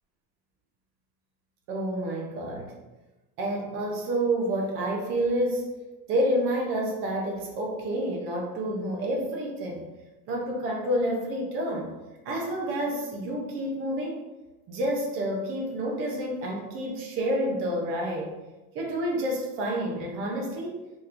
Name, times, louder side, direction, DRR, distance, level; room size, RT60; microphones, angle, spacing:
voice 1, 1.7-2.7 3.4-5.7 6.1-9.8 10.3-11.9 12.3-14.2 14.7-18.3 18.7-20.8, right 1 dB, 30° right, -1 dB, 0.4 m, -29 dB
3.3 x 3.0 x 2.4 m, 1.1 s
cardioid pair, 165°, 49 cm